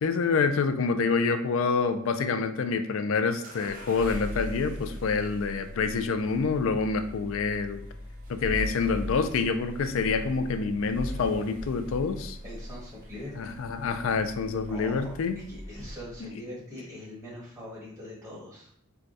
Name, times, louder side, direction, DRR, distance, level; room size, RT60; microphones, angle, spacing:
voice 1, 0.0-7.8 8.4-12.4 13.4-15.3 16.2-16.3, left 4 dB, 65° left, 9 dB, 0.4 m, -27 dB
sound 1, 3.4-16.3, equal, 40° right, 0.6 m, -40 dB
voice 2, 12.4-13.6 14.7-18.8, equal, 15° right, -8 dB, 1.4 m, -42 dB
4.6 x 2.2 x 2.6 m, 0.64 s
head